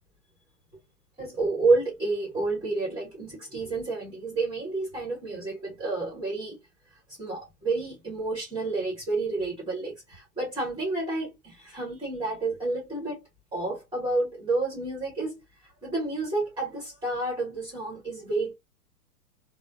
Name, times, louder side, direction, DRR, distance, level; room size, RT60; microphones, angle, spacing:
voice 1, 1.2-6.6 6.9-18.5, right 3 dB, 10° right, 1.3 m, -30 dB
3.3 x 2.1 x 2.7 m
figure-of-eight pair, 105°, 46 cm